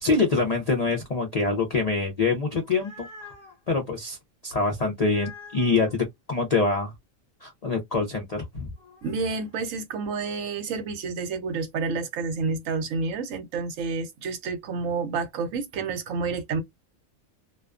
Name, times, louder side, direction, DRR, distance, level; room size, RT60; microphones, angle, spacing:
voice 1, 0.0-3.1 3.7-4.2 4.4-6.9 7.4-8.7, left 3 dB, 60° left, 0.4 m, -25 dB
sound 1, 2.5-3.6 5.0-6.0 8.8-9.5, left 4 dB, 35° left, 1.2 m, -46 dB
voice 2, 9.0-16.6, right 4 dB, 70° right, 1.0 m, -29 dB
2.4 x 2.2 x 2.3 m
omnidirectional pair, 1.4 m